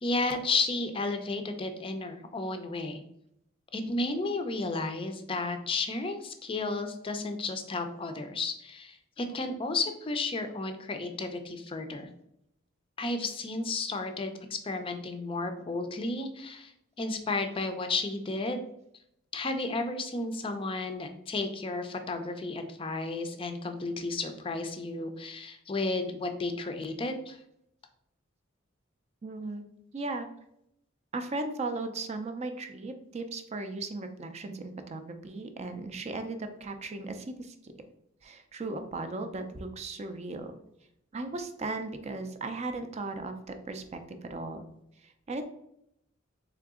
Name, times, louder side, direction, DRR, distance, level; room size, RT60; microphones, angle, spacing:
voice 1, 0.0-3.0 3.7-12.1 13.0-16.7 17.0-18.6 19.3-27.4, left 3 dB, 25° left, 7 dB, 0.4 m, -33 dB
voice 2, 29.2-29.6 29.9-30.3 31.1-37.7 38.2-40.5 41.1-44.7 45.0-45.4, right 3 dB, 30° right, 7 dB, 0.4 m, -37 dB
3.8 x 3.3 x 3.6 m, 0.77 s
head